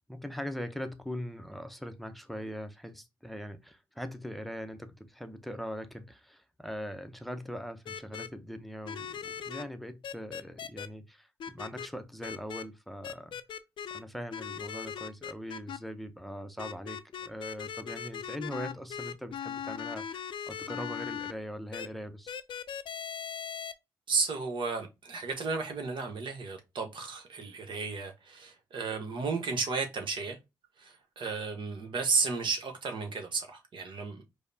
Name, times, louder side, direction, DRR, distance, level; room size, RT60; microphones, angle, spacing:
voice 1, 0.1-13.4 13.9-22.4, equal, ahead, 0.6 m, -41 dB
sound 1, 7.9-8.3 8.9-9.6 10.0-10.9 11.4-11.9 12.2-12.6 13.0-14.0 14.3-15.8 16.6-21.3 21.7-21.9 22.3-23.7, left 8 dB, 60° left, 0.4 m, -39 dB
voice 2, 24.1-30.4 30.8-34.2, right 4 dB, 60° right, 0.9 m, -33 dB
4.8 x 2.1 x 2.6 m
supercardioid pair, 60°, 9 cm